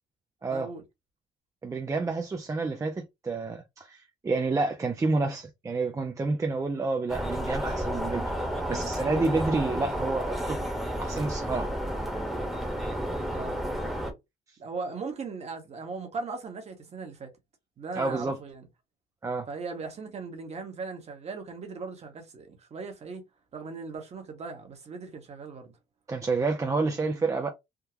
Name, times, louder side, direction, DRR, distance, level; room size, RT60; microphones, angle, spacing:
voice 1, 0.5-0.8 13.3-13.6 14.6-17.3 17.8-18.6 19.5-23.2 23.5-25.7, right 4 dB, 40° right, 1.2 m, -38 dB
voice 2, 1.6-8.3 8.7-10.6 11.0-11.7 17.9-18.4 19.2-19.5 26.1-27.5, right 3 dB, 20° right, 0.5 m, -29 dB
sound 1, 7.1-14.1, equal, ahead, 1.2 m, -31 dB
3.6 x 2.2 x 2.8 m
cardioid pair, 110°, 17 cm